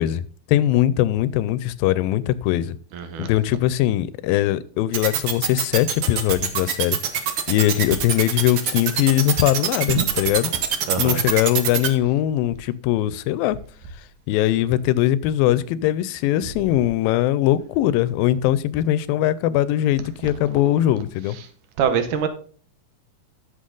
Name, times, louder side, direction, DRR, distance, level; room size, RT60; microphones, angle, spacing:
voice 1, 0.0-2.8 3.2-7.0 7.5-10.5 11.0-13.6 14.3-21.4, left 13 dB, 90° left, 2.3 m, -21 dB
voice 2, 2.9-3.3 10.0-10.1 10.9-11.2 21.8-22.3, right 7 dB, 70° right, 2.3 m, -23 dB
sound 1, 4.9-11.9, right 9 dB, 90° right, 1.2 m, -23 dB
12.5 x 5.7 x 3.8 m
omnidirectional pair, 4.0 m